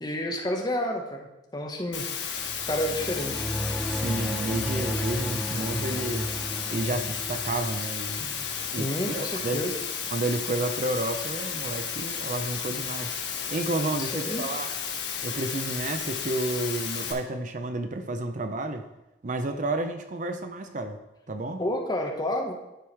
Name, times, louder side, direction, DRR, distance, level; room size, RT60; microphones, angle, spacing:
voice 1, 0.0-2.1 2.7-3.5 8.6-9.7 14.0-14.5 21.6-22.5, left 1 dB, 25° left, 2 dB, 1.1 m, -30 dB
Water, 1.9-17.1, left 7 dB, 75° left, 1.2 m, -33 dB
sound 1, 2.4-9.0, equal, 5° left, 0.5 m, -34 dB
voice 2, 3.9-6.3 6.7-8.4 8.7-9.6 10.1-13.2 13.5-14.7 15.2-18.9 19.2-21.0 21.3-21.6, right 2 dB, 45° right, 7 dB, 0.6 m, -31 dB
10.5 x 4.7 x 4.7 m, 0.99 s
head